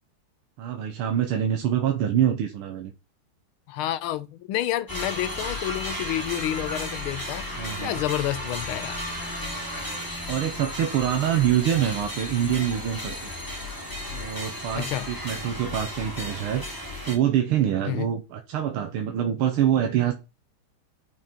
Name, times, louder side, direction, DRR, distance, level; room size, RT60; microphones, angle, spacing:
voice 1, 0.6-2.9 7.6-8.0 10.3-13.3 14.1-16.6 17.1-20.1, right 10 dB, 85° right, 1.9 m, -25 dB
voice 2, 3.7-7.5 7.8-9.0 14.7-15.1 17.9-18.1, left 13 dB, 80° left, 1.6 m, -29 dB
sound 1, 4.9-17.2, left 1 dB, 10° left, 2.4 m, -34 dB
8.5 x 6.3 x 4.4 m
omnidirectional pair, 2.3 m